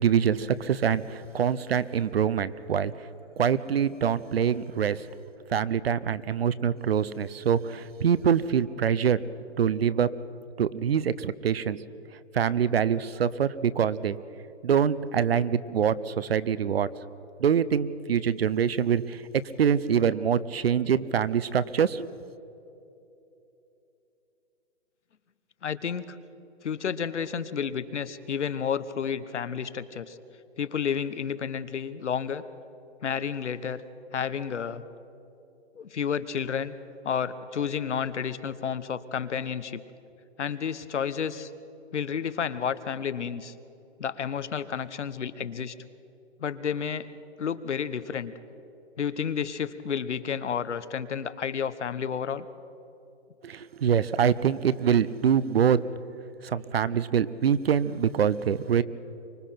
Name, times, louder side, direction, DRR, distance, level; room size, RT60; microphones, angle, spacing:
voice 1, 0.0-2.9 3.4-5.0 5.5-9.2 9.6-10.1 10.6-11.8 12.3-14.2 14.6-16.9 17.4-19.2 19.6-22.1 53.4-55.8 56.4-58.8, right 8 dB, 60° right, 17 dB, 0.8 m, -25 dB
voice 2, 25.6-26.2 26.6-30.2 30.6-32.4 33.0-33.8 34.1-34.8 35.8-36.7 37.0-39.8 40.4-41.5 41.9-43.5 44.0-45.7 46.4-47.1 47.4-48.3 49.0-52.5, left 7 dB, 85° left, 13 dB, 1.2 m, -31 dB
24.5 x 20.0 x 5.9 m, 2.9 s
hypercardioid pair, 170°, 34 cm